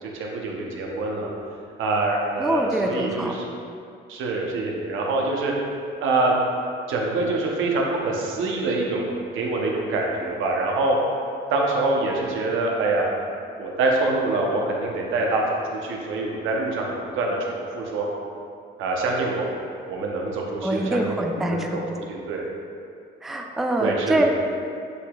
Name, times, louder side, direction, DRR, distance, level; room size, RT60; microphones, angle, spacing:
voice 1, 0.0-1.3 1.8-3.4 4.1-5.5 6.0-6.3 6.9-9.1 9.3-11.0 11.5-13.1 13.6-18.0 18.8-19.5 19.9-22.5 23.8-24.3, right 2 dB, 85° right, -1 dB, 0.8 m, -25 dB
voice 2, 2.4-3.3 20.6-21.8 23.2-24.3, right 1 dB, ahead, 1 dB, 0.4 m, -24 dB
8.1 x 2.8 x 2.3 m, 2.4 s
cardioid pair, 90°, 20 cm